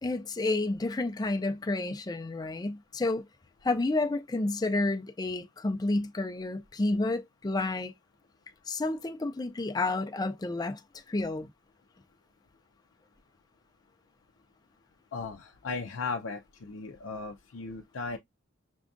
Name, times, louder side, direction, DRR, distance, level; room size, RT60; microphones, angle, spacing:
voice 1, 0.0-3.3 3.6-7.9 8.7-10.8 11.1-11.5, left 2 dB, 20° left, 0.5 m, -30 dB
voice 2, 15.1-18.2, left 4 dB, 90° left, 0.5 m, -36 dB
6.1 x 2.4 x 2.5 m
head